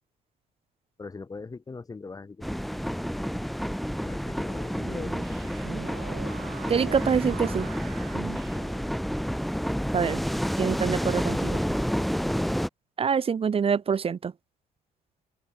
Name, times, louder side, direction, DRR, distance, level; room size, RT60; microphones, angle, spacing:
voice 1, 1.0-2.6 4.0-5.5, left 4 dB, 20° left, 1.4 m, -41 dB
sound 1, 2.4-12.7, equal, ahead, 1.1 m, -29 dB
sound 2, 4.5-8.9, right 17 dB, 80° right, 1.4 m, -44 dB
voice 2, 6.7-7.7 9.9-10.2 10.6-11.6 13.0-14.3, right 6 dB, 35° right, 1.5 m, -25 dB
open air
cardioid pair, 110°, 17 cm